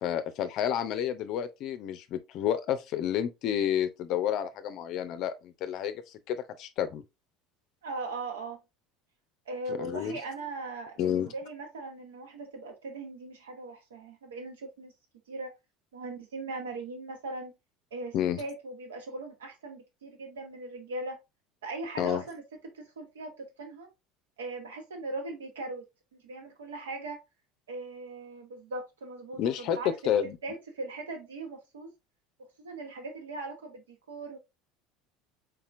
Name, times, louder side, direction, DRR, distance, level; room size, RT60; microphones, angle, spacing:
voice 1, 0.0-7.0 9.7-10.2 11.0-11.3 18.1-18.4 22.0-22.2 29.4-30.4, left 10 dB, 50° left, 0.6 m, -30 dB
voice 2, 7.8-8.6 9.5-14.9 15.3-15.5 15.9-17.5 17.9-21.2 21.6-23.9 24.4-25.8 26.2-27.2 27.7-29.9 30.4-31.9 32.6-34.4, right 2 dB, 70° right, 1.2 m, -39 dB
4.2 x 4.0 x 2.5 m
figure-of-eight pair, 70°, 0 cm